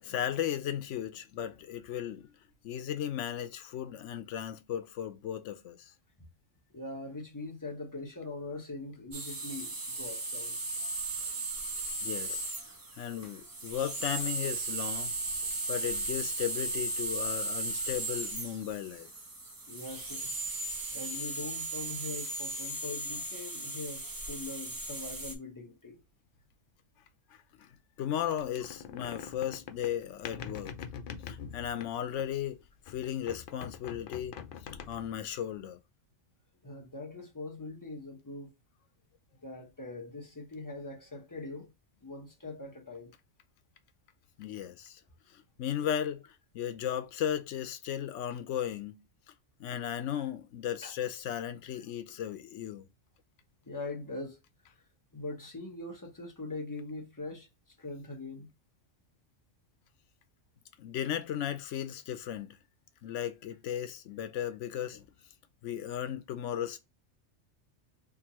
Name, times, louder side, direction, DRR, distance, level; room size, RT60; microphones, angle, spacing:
voice 1, 0.0-2.3 2.6-5.9 12.0-12.4 13.0-15.1 15.7-19.1 27.6-27.7 28.0-30.7 31.3-32.6 32.9-34.4 34.9-35.8 44.4-45.0 45.3-46.2 46.5-49.0 49.6-52.9 60.8-62.6 63.0-65.1 65.6-66.8, left 10 dB, 85° left, 0.9 m, -35 dB
voice 2, 6.7-10.5 17.8-17.9 19.7-20.3 20.9-25.9 36.6-38.5 39.4-41.7 42.0-43.1 50.8-50.9 53.7-54.4 55.1-57.5 57.8-58.5, left 2 dB, 20° left, 1.0 m, -42 dB
sound 1, 9.1-25.3, right 2 dB, 25° right, 0.6 m, -36 dB
door squeaking, 28.3-32.5 32.9-35.3, left 7 dB, 60° left, 0.6 m, -44 dB
3.6 x 2.6 x 2.8 m
omnidirectional pair, 1.2 m